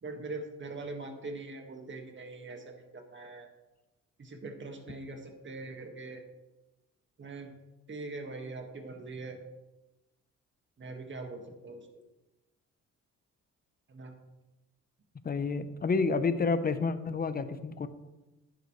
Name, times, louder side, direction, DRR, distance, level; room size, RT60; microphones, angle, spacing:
voice 1, 0.0-3.5 4.2-6.2 7.2-7.5 7.9-9.4 10.8-11.9 13.9-14.1, right 3 dB, 40° right, 4 dB, 1.9 m, -42 dB
voice 2, 15.2-17.9, left 4 dB, 30° left, 11 dB, 0.9 m, -29 dB
11.0 x 9.7 x 3.3 m, 1.0 s
cardioid pair, 90°, 30 cm